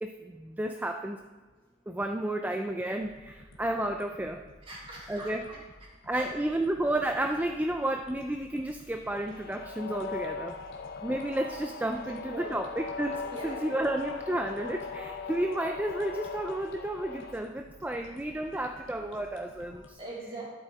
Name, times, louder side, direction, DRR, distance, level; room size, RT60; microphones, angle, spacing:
voice 1, 0.0-1.2 1.9-4.4 5.1-5.5 6.1-10.6 11.0-20.0, right 1 dB, 10° right, 5 dB, 0.4 m, -32 dB
sound 1, 3.0-19.9, left 1 dB, 75° left, 1.5 m, -54 dB
voice 2, 4.6-5.6 6.1-6.3 12.3-12.6 13.3-13.7 20.0-20.4, right 2 dB, 30° right, -6 dB, 3.5 m, -41 dB
sound 2, 9.1-17.3, left 5 dB, 55° left, 0.7 m, -39 dB
12.5 x 7.5 x 4.1 m, 1.3 s
head